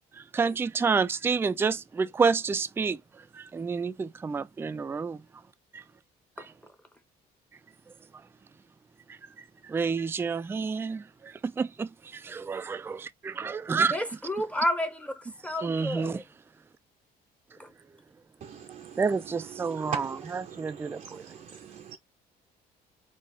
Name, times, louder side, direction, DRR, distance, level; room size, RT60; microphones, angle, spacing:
voice 1, 0.2-3.0 3.3-5.2 5.7-5.8 9.1-9.2 9.6-14.0 15.6-16.2 19.0-21.3, right 5 dB, 15° right, 0.3 m, -29 dB
voice 2, 13.9-16.2 17.6-17.7, left 1 dB, 5° left, 0.8 m, -31 dB
voice 3, 18.4-18.9 19.7-21.2 21.9-22.0, right 8 dB, 50° right, 0.6 m, -40 dB
4.1 x 2.4 x 3.9 m
cardioid pair, 110°, 17 cm